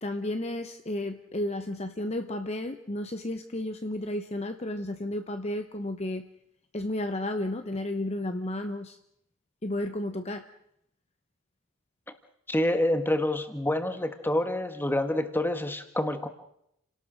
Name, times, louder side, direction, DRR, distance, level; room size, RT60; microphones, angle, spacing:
voice 1, 0.0-6.2 6.7-9.0 9.6-10.5, left 1 dB, 30° left, 8 dB, 0.9 m, -32 dB
voice 2, 12.5-16.3, left 1 dB, 10° left, 8 dB, 1.6 m, -27 dB
30.0 x 18.5 x 6.4 m, 0.77 s
head